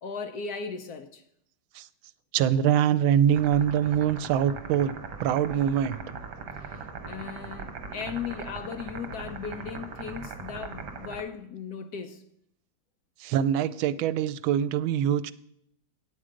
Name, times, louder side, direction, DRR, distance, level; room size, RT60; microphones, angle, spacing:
voice 1, 0.0-1.2 6.6-12.2, left 6 dB, 70° left, 0.9 m, -37 dB
voice 2, 2.3-4.9 5.2-6.2 13.2-15.3, right 9 dB, 85° right, 1.4 m, -24 dB
sound 1, 3.3-11.2, right 5 dB, 60° right, 1.6 m, -40 dB
9.1 x 8.5 x 5.0 m
omnidirectional pair, 2.2 m